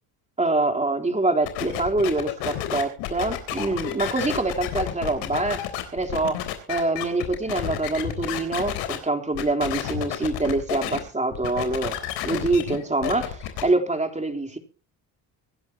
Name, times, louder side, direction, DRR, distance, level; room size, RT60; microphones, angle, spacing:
voice 1, 0.4-5.6 5.9-12.0 12.2-14.6, right 2 dB, 15° right, 3.6 m, -25 dB
sound 1, 1.4-9.0 9.3-11.0 11.3-13.6, left 12 dB, 85° left, 3.7 m, -30 dB
25.0 x 11.5 x 2.9 m
supercardioid pair, 75°, 42 cm